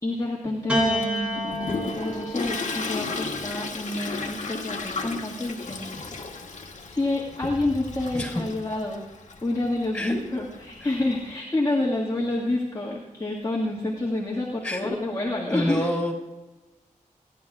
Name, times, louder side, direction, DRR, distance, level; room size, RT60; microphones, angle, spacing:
voice 1, 0.0-5.9 6.8-15.9, left 2 dB, 25° left, -5 dB, 1.8 m, -28 dB
Piano, 0.7-5.2 6.2-7.0, equal, 10° right, 3.0 m, -32 dB
Toilet flush, 1.0-11.3, left 4 dB, 65° left, 1.5 m, -35 dB
voice 2, 15.5-16.1, equal, 5° left, -1 dB, 4.4 m, -27 dB
28.5 x 10.5 x 2.4 m, 1.1 s
wide cardioid pair, 100°, 14 cm